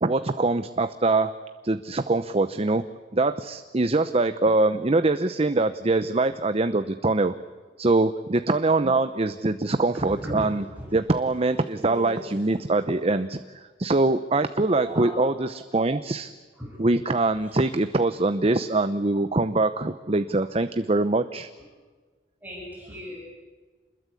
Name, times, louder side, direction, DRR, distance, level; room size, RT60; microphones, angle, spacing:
voice 1, 0.0-2.8 3.1-7.3 7.8-10.6 10.9-16.3 16.8-21.5, right 2 dB, 35° right, 11 dB, 0.8 m, -23 dB
voice 2, 9.9-10.5 10.7-10.9 11.3-12.3 12.9-13.2 14.7-15.2 16.5-16.8 17.3-17.7 22.4-23.2, equal, 10° right, -4 dB, 7.8 m, -38 dB
28.0 x 21.5 x 8.5 m, 1.4 s
head